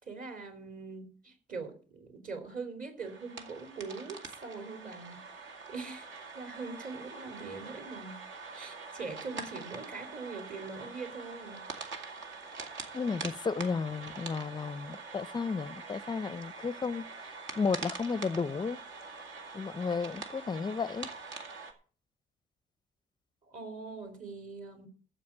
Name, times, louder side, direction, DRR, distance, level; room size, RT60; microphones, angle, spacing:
voice 1, 0.0-6.1 6.3-8.3 8.5-11.7 23.4-24.9, right 4 dB, 45° right, 3.2 m, -42 dB
sound 1, 3.0-21.7, right 4 dB, 70° right, 2.3 m, -44 dB
voice 2, 12.9-17.1 17.5-18.8 19.5-21.1, left 5 dB, 20° left, 0.5 m, -33 dB
14.5 x 4.9 x 8.7 m
cardioid pair, 90°, 20 cm